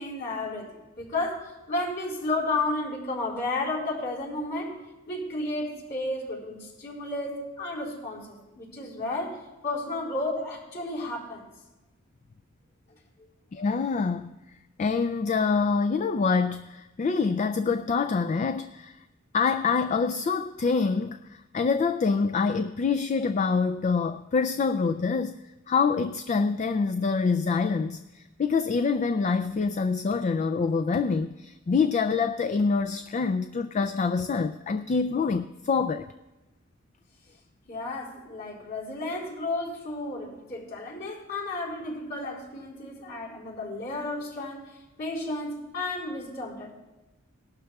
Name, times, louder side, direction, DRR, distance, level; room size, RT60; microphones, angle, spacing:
voice 1, 0.0-4.8 5.1-11.5 37.7-46.7, left 2 dB, 55° left, -5 dB, 4.3 m, -32 dB
voice 2, 13.5-14.4 14.8-19.0 19.3-25.4 25.7-36.1, left 5 dB, 35° left, 9 dB, 0.3 m, -26 dB
19.0 x 12.0 x 2.4 m, 1.1 s
head